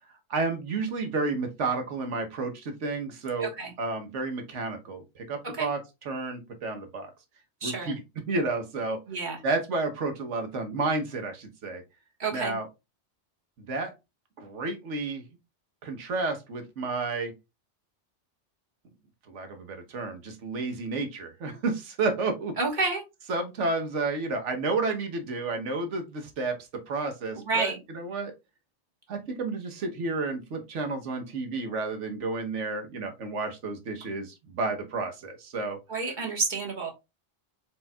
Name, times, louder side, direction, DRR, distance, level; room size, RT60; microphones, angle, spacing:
voice 1, 0.3-3.5 3.8-7.1 7.6-8.0 8.3-9.0 9.4-11.8 12.3-12.7 13.7-13.9 14.4-15.2 15.8-17.3 19.3-22.6 23.3-26.6 26.9-28.3 29.1-35.8, right 3 dB, 90° right, 5 dB, 1.3 m, -31 dB
voice 2, 3.4-3.7 5.5-5.7 7.6-7.9 9.1-9.4 12.2-12.6 22.6-23.0 27.4-27.8 35.9-36.9, right 3 dB, 45° right, 1 dB, 1.5 m, -29 dB
4.5 x 4.4 x 2.2 m, 0.24 s
omnidirectional pair, 1.2 m